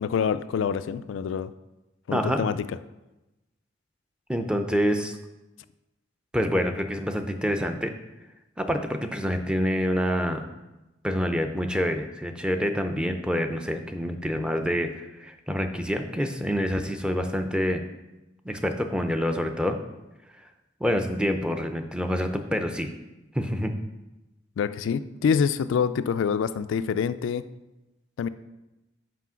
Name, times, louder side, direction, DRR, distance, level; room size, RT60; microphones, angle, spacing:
voice 1, 0.0-1.5 2.1-2.8 24.6-27.5 28.2-28.3, left 6 dB, 75° left, 13 dB, 0.3 m, -26 dB
voice 2, 2.1-2.4 4.3-5.2 6.3-7.9 8.6-10.4 11.0-17.8 18.4-19.8 20.8-22.9 23.3-23.7, equal, 5° right, 6 dB, 0.5 m, -27 dB
6.0 x 4.9 x 5.7 m, 1.0 s
head